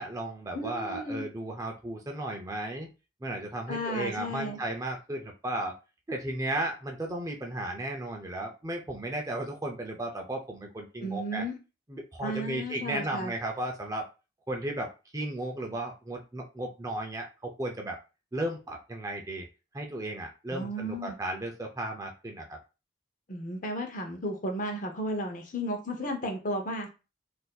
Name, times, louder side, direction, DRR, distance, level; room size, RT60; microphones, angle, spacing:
voice 1, 0.0-2.9 3.2-5.8 6.1-11.4 11.9-14.1 14.5-18.0 18.3-19.5 19.7-22.6, right 1 dB, 15° right, 0.4 m, -35 dB
voice 2, 0.5-1.3 3.7-4.6 11.0-11.5 12.2-13.3 20.5-21.2 23.3-26.9, equal, 45° left, 0.7 m, -34 dB
3.9 x 2.6 x 2.3 m
head